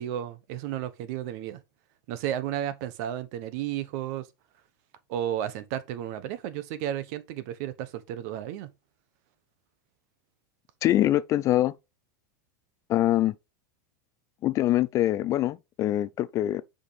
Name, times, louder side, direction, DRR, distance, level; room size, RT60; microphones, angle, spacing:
voice 1, 0.0-1.6 2.1-4.3 5.1-8.7, right 11 dB, 55° right, 1.0 m, -33 dB
voice 2, 10.8-11.7 12.9-13.3 14.4-16.6, left 13 dB, 30° left, 0.3 m, -24 dB
6.5 x 5.2 x 3.3 m
supercardioid pair, 145°, 10 cm